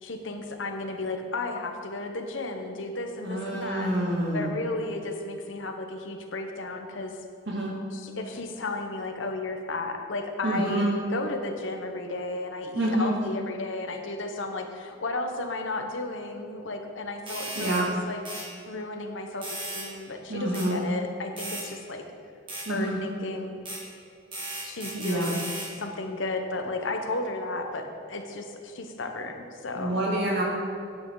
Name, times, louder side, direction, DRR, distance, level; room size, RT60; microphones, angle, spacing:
voice 1, 0.0-3.9 4.3-7.2 7.9-17.8 18.1-18.2 18.7-22.0 22.7-23.6 24.6-25.4 25.8-30.0, left 2 dB, 75° left, 4 dB, 1.0 m, -33 dB
voice 2, 3.2-4.5 7.5-7.7 10.4-10.9 12.7-13.1 17.6-17.9 20.3-20.8 22.7-23.0 24.9-25.3 29.8-30.4, right 1 dB, 60° right, -4 dB, 2.3 m, -27 dB
sound 1, 17.3-17.8 18.3-18.5 19.4-19.9 20.5-20.7 21.4-21.7 22.5-22.7 23.7-23.8 24.3-25.7, right 1 dB, 25° right, 1.9 m, -36 dB
10.0 x 8.7 x 3.9 m, 2.5 s
head